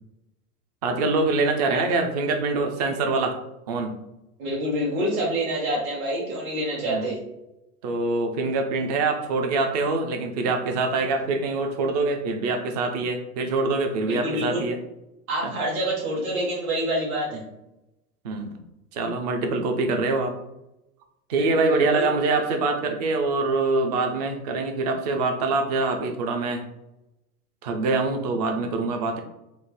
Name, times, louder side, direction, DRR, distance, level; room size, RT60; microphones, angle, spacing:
voice 1, 0.8-3.4 3.7-4.0 6.8-7.1 7.8-14.8 15.4-15.5 17.3-17.4 18.2-18.5 18.9-20.3 21.3-26.7 27.6-29.2, right 3 dB, 30° right, 5 dB, 0.3 m, -24 dB
voice 2, 4.4-7.2 14.0-14.6 15.3-17.4 21.3-22.1, right 1 dB, 60° right, -4 dB, 1.3 m, -27 dB
3.5 x 2.0 x 4.0 m, 0.91 s
hypercardioid pair, 120°, 46 cm